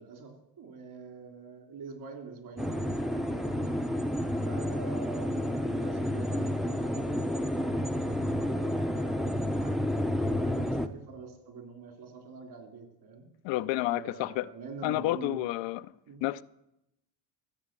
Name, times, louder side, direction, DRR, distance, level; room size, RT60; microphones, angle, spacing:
voice 1, 0.0-3.9 4.4-7.4 8.0-13.3 13.9-15.4 16.1-16.2, right 4 dB, 55° right, 3.4 m, -45 dB
sound 1, 2.6-10.9, left 1 dB, ahead, 0.5 m, -30 dB
voice 2, 13.4-14.5 14.8-15.8 16.2-16.4, left 16 dB, 75° left, 0.5 m, -30 dB
15.0 x 7.3 x 7.5 m
cardioid pair, 110°, 44 cm